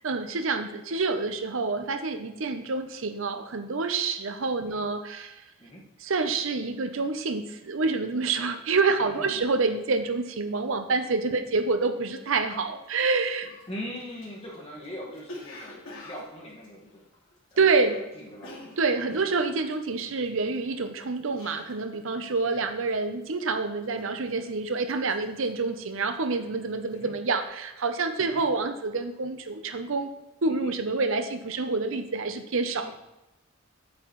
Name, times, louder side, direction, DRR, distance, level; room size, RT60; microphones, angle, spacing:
voice 1, 0.0-5.4 6.0-13.5 17.6-18.0 18.8-30.1 30.4-32.9, right 4 dB, 65° right, 8 dB, 0.7 m, -27 dB
voice 2, 8.9-9.4 11.3-11.4 13.7-17.0 17.5-17.7 18.2-18.7 20.0-20.1 22.4-22.6 23.9-24.1 26.9-27.1 28.2-28.4 30.5-30.7 32.8-32.9, left 1 dB, 30° left, -4 dB, 1.6 m, -41 dB
Cough, 13.0-13.1 13.4-17.9 18.1-22.0 22.2-22.6 22.9-23.4 23.8-24.4 24.7-26.4 26.7-27.0, left 1 dB, 75° left, 2.3 m, -47 dB
8.4 x 8.1 x 3.1 m, 0.97 s
head